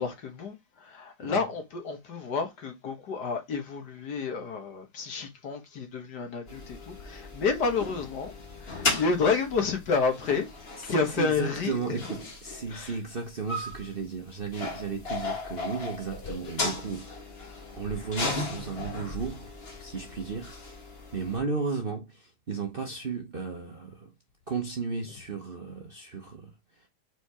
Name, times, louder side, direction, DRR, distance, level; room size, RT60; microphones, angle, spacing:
voice 1, 0.0-8.3 8.6-12.0 12.7-13.0, left 4 dB, 60° left, 1.9 m, -30 dB
sound 1, 6.5-21.4, left 2 dB, 35° left, 1.6 m, -36 dB
voice 2, 10.8-17.3 17.7-19.5 19.8-24.1 24.5-26.5, right 4 dB, 40° right, 0.8 m, -34 dB
5.0 x 4.7 x 4.8 m
omnidirectional pair, 2.0 m